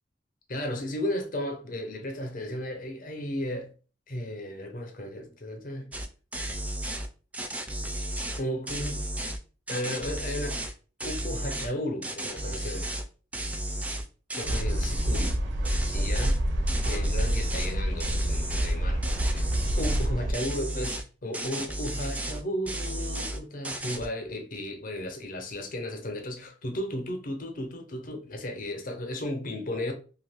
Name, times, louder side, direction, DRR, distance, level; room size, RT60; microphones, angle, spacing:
voice 1, 0.5-3.7 4.1-5.9 8.4-9.0 9.7-10.6 11.0-12.9 14.3-15.4 15.9-16.4 16.8-19.5 19.8-29.9, left 1 dB, 50° left, 0.7 m, -34 dB
sound 1, 5.9-6.1 6.3-7.1 7.3-9.4 9.7-10.7 11.0-11.7 12.0-13.0 13.3-15.4 15.6-16.4 16.7-17.7 18.0-18.7 19.0-20.1 20.3-21.0 21.3-22.4 22.7-23.4 23.6-24.1, right 1 dB, 10° right, 0.3 m, -33 dB
sound 2, 14.4-20.3, equal, 70° right, 0.5 m, -27 dB
2.6 x 2.4 x 3.5 m
head